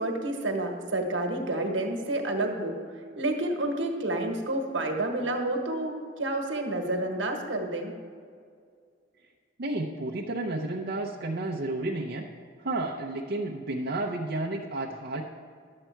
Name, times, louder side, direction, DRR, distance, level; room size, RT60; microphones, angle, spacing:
voice 1, 0.0-2.8 3.1-7.9, right 2 dB, 75° right, 3 dB, 1.4 m, -29 dB
voice 2, 9.6-12.3 12.6-15.2, right 2 dB, 55° right, -2 dB, 0.7 m, -31 dB
11.5 x 7.6 x 4.5 m, 2.2 s
head